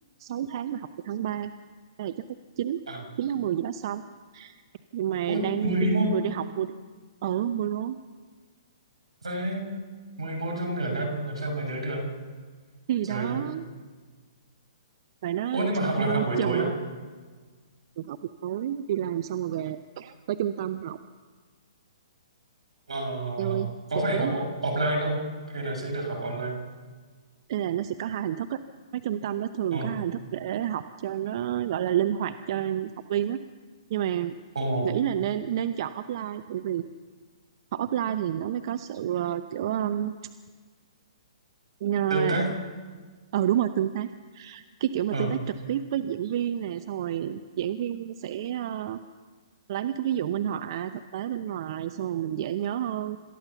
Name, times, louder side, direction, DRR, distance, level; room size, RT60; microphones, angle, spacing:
voice 1, 0.2-1.5 2.0-2.1 2.6-2.8 3.2-4.0 4.3-4.5 4.9-6.7 7.2-8.0 12.9-13.6 15.2-15.6 16.1-16.7 18.0-21.0 23.4-23.7 23.9-24.4 27.5-28.6 28.9-33.4 33.9-34.3 34.8-36.8 37.7-40.1 41.8-42.4 43.3-44.1 44.3-45.4 45.7-49.0 49.7-53.2, right 11 dB, 50° right, 10 dB, 0.8 m, -29 dB
voice 2, 5.3-6.2 9.2-9.7 10.2-12.0 13.1-13.4 15.5-16.7 22.9-25.2 25.5-26.6 29.7-29.9 34.5-34.9 42.1-42.5 45.1-45.3, right 1 dB, 80° right, 3 dB, 6.3 m, -28 dB
27.0 x 13.5 x 7.1 m, 1.5 s
hypercardioid pair, 130°, 3 cm